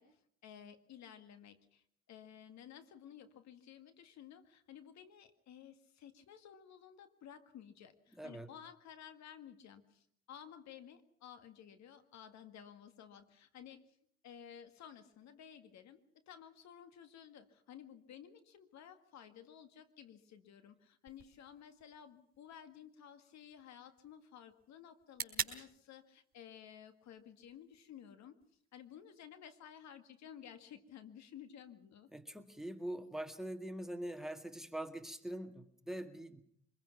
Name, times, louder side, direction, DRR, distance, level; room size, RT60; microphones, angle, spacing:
voice 1, 0.0-14.0 14.2-28.4 28.7-32.1, left 9 dB, 55° left, 9 dB, 1.9 m, -55 dB
voice 2, 8.2-8.5 32.1-36.4, right 1 dB, ahead, 9 dB, 1.9 m, -43 dB
sound 1, 21.1-29.1, right 6 dB, 30° right, 4.2 m, -48 dB
24.5 x 21.5 x 5.8 m, 0.66 s
hypercardioid pair, 70°, 33 cm